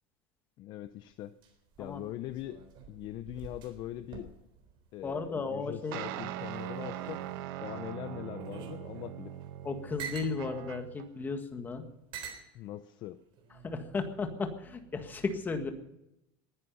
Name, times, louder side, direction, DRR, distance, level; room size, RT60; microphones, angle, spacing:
voice 1, 0.6-1.3 1.8-2.6 2.9-4.3 4.9-7.2 7.6-9.4 12.5-13.2, left 13 dB, 35° left, 13 dB, 0.6 m, -41 dB
sound 1, 0.8-5.9 6.3-7.5 8.1-10.4 11.2-11.3 12.1-12.5 13.3-13.7, right 7 dB, 40° right, 3.7 m, -47 dB
voice 2, 5.0-6.0 9.6-11.9 13.6-15.7, left 4 dB, 15° left, 6 dB, 1.7 m, -35 dB
sound 2, 5.9-11.1, right 12 dB, 65° right, 1.1 m, -41 dB
20.0 x 11.0 x 5.6 m, 0.86 s
cardioid pair, 170°, 12 cm